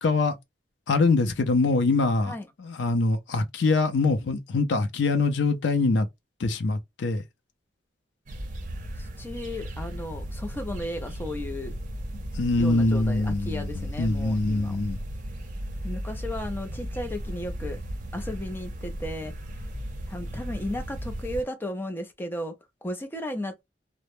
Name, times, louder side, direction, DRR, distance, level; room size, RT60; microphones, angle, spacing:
voice 1, 0.0-0.3 0.9-2.3 2.6-6.1 6.4-7.2 12.3-15.0, left 3 dB, 85° left, 0.4 m, -24 dB
sound 1, 8.3-21.4, equal, 45° right, 0.6 m, -35 dB
voice 2, 9.0-11.7 12.6-14.8 15.8-17.8 18.1-19.3 20.1-22.5 22.8-23.6, left 1 dB, 10° left, 0.5 m, -34 dB
2.1 x 2.0 x 2.9 m
head